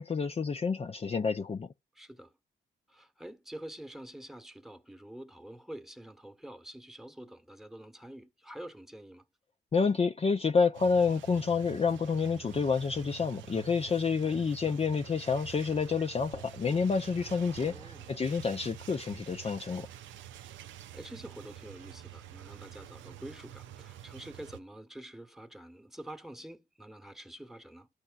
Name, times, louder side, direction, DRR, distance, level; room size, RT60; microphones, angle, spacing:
voice 1, 0.0-1.7 9.7-19.9, left 5 dB, 30° left, 0.5 m, -29 dB
voice 2, 1.9-2.3 2.9-9.3 14.2-14.8 17.6-18.1 20.9-27.9, right 1 dB, ahead, 1.1 m, -47 dB
sound 1, 10.7-24.6, right 11 dB, 85° right, 0.5 m, -48 dB
12.5 x 4.3 x 2.3 m
supercardioid pair, 60°, 19 cm